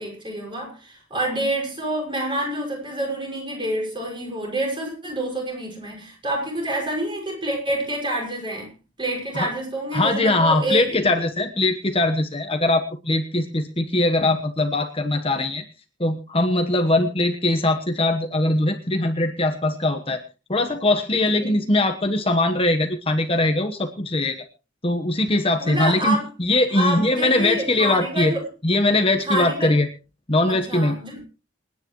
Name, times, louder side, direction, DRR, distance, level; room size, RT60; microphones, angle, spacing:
voice 1, 0.0-8.7 9.0-11.0 21.4-21.6 25.6-26.3 26.7-28.4 29.3-29.8 30.5-31.2, right 1 dB, 25° right, 0 dB, 6.0 m, -27 dB
voice 2, 9.9-15.6 16.0-20.2 20.5-24.4 24.8-28.3 28.6-29.9 30.3-30.9, left 2 dB, 30° left, 5 dB, 1.2 m, -21 dB
27.0 x 9.8 x 3.1 m, 0.33 s
head